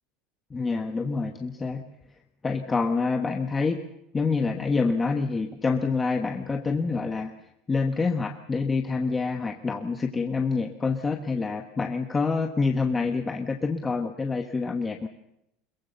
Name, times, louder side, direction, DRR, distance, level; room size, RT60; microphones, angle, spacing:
voice 1, 0.5-1.8 2.4-3.8 4.1-7.3 7.7-15.1, left 4 dB, 15° left, 5 dB, 1.2 m, -27 dB
22.5 x 21.5 x 6.8 m, 0.82 s
cardioid pair, 165°, 0 cm